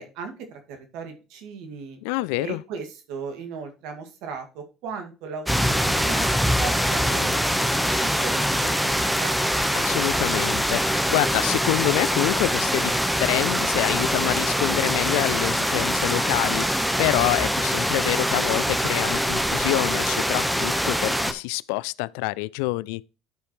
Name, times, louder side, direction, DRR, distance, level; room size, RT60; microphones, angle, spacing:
voice 1, 0.0-2.0 2.3-6.3 6.6-8.7 9.2-9.5, right 5 dB, 70° right, 2.1 m, -37 dB
voice 2, 2.0-2.6 9.7-23.0, left 21 dB, 80° left, 0.3 m, -27 dB
sound 1, 5.5-21.3, equal, ahead, 1.1 m, -23 dB
11.5 x 4.9 x 3.1 m
hypercardioid pair, 75°, 0 cm